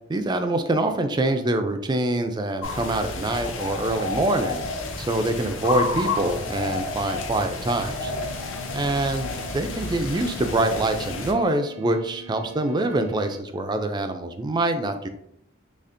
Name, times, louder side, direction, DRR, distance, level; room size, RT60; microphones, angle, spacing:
voice 1, 0.1-4.6 5.0-8.1 8.7-15.1, right 2 dB, 20° right, 7 dB, 0.3 m, -25 dB
sound 1, 2.6-11.3, left 3 dB, 75° left, 0.6 m, -31 dB
sound 2, 8.0-13.4, right 6 dB, 85° right, 0.4 m, -46 dB
4.2 x 2.8 x 2.5 m, 0.75 s
head